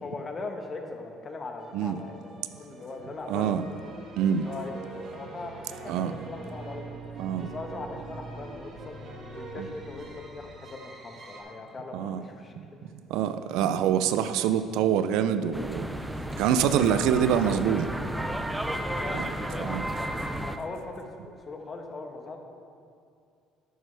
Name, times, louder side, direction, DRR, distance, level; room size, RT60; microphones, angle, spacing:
voice 1, 0.0-3.5 4.2-7.0 7.4-9.0 9.3-10.1 10.3-12.5 12.8-12.9 18.6-22.4, left 3 dB, 35° left, 4 dB, 1.2 m, -40 dB
sound 1, 1.6-11.4, right 3 dB, 50° right, 1.7 m, -43 dB
voice 2, 3.3-3.6 4.2-4.5 5.9-6.1 7.2-7.5 9.6-9.7 11.9-12.2 13.1-15.9 16.3-17.9 19.2-19.3 19.6-19.8, right 9 dB, 80° right, 11 dB, 0.4 m, -25 dB
sound 2, 15.5-20.6, right 1 dB, 5° right, 0.6 m, -32 dB
11.0 x 8.9 x 3.4 m, 2.4 s
supercardioid pair, 85°, 0 cm